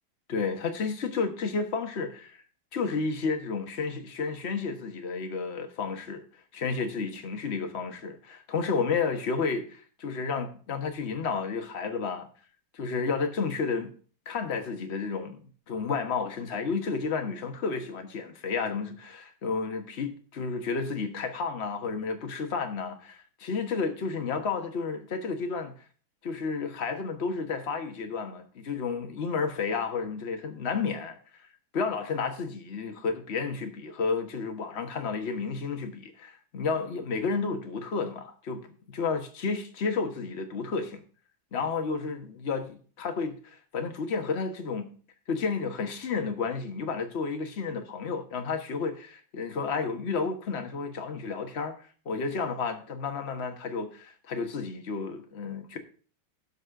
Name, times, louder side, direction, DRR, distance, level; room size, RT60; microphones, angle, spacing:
voice 1, 0.3-2.4 2.7-6.2 6.5-12.3 12.7-13.9 14.2-25.7 26.2-31.5 31.7-38.6 38.9-41.0 41.5-44.9 45.3-51.8 52.0-55.8, left 5 dB, 40° left, 1.2 m, -31 dB
12.0 x 4.3 x 6.3 m
omnidirectional pair, 2.2 m